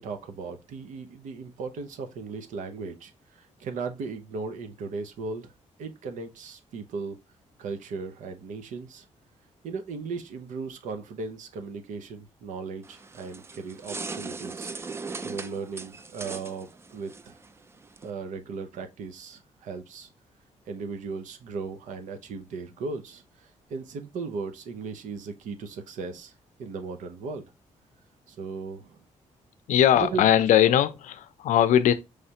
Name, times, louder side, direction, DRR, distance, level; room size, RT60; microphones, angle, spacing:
voice 1, 0.0-5.5 5.8-7.2 7.6-9.0 9.6-14.7 15.2-17.4 18.0-20.1 20.7-26.3 26.6-27.4 28.3-29.0 30.0-30.3, right 4 dB, 85° right, 0.7 m, -37 dB
sound 1, 12.8-18.1, right 4 dB, 20° right, 0.3 m, -39 dB
voice 2, 29.7-31.9, left 10 dB, 85° left, 0.5 m, -20 dB
4.9 x 3.3 x 2.8 m
cardioid pair, 135°, 13 cm